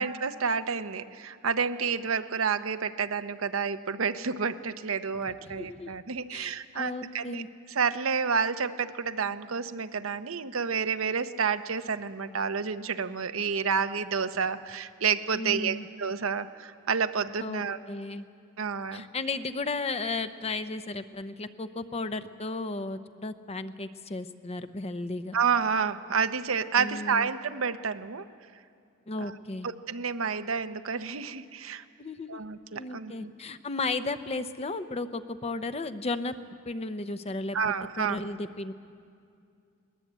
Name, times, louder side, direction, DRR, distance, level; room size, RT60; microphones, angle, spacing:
voice 1, 0.0-7.4 7.7-17.8 18.6-19.1 25.3-28.3 29.2-29.3 29.6-31.8 32.3-33.3 37.5-38.2, right 6 dB, 80° right, 10 dB, 0.8 m, -29 dB
voice 2, 5.5-5.9 6.3-7.5 15.3-15.9 17.4-18.3 18.9-25.3 26.8-27.3 29.1-29.7 32.0-32.4 32.7-36.4 36.7-38.7, left 3 dB, 30° left, 11 dB, 0.7 m, -34 dB
21.5 x 19.5 x 8.2 m, 2.4 s
head